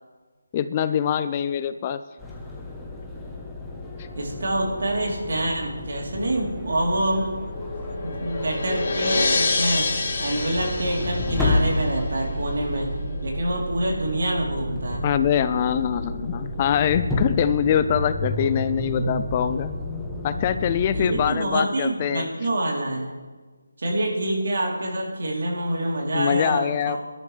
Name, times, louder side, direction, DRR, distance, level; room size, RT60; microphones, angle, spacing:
voice 1, 0.5-2.0 15.0-19.7 20.2-22.3 26.1-27.0, left 9 dB, 20° left, 12 dB, 0.3 m, -23 dB
sound 1, 2.2-21.3, left 1 dB, 5° left, 1.1 m, -31 dB
voice 2, 4.2-7.4 7.9-9.9 10.2-13.0 13.2-15.0 20.9-23.1 23.8-27.0, right 1 dB, 60° right, -1 dB, 3.5 m, -26 dB
sound 2, 7.1-12.2, left 3 dB, 40° left, 2.6 m, -28 dB
21.5 x 11.5 x 3.4 m, 1.4 s
figure-of-eight pair, 170°, 0 cm